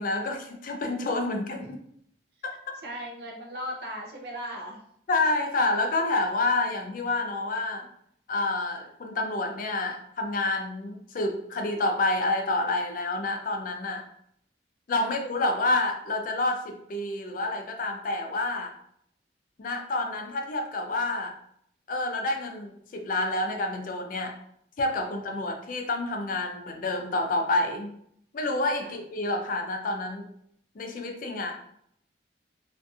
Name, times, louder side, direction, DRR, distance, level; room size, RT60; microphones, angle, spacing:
voice 1, 0.0-1.8 2.4-2.8 5.1-7.9 8.3-14.0 14.9-18.7 19.6-21.3 21.9-24.3 24.8-27.9 28.3-30.3 30.8-31.5, left 2 dB, 50° left, 3 dB, 0.4 m, -28 dB
voice 2, 2.8-4.8 15.0-15.1 28.8-28.9, equal, 60° right, 0 dB, 0.6 m, -37 dB
2.6 x 2.5 x 2.3 m, 0.69 s
head